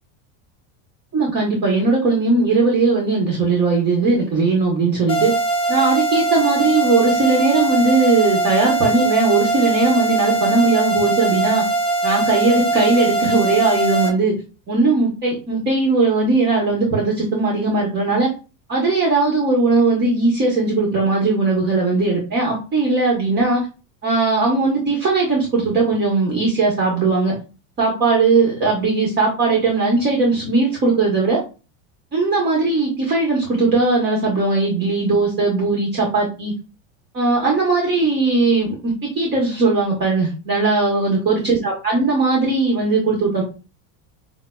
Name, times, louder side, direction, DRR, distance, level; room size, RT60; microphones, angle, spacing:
voice 1, 1.1-5.3 5.7-11.6 12.0-14.3 14.7-18.3 18.7-23.6 24.0-27.3 27.8-31.4 32.1-36.5 37.1-43.4, right 3 dB, 25° right, -2 dB, 0.9 m, -18 dB
sound 1, 5.1-14.1, right 3 dB, 15° left, 0.4 m, -21 dB
5.4 x 2.0 x 2.2 m, 0.32 s
supercardioid pair, 150°, 43 cm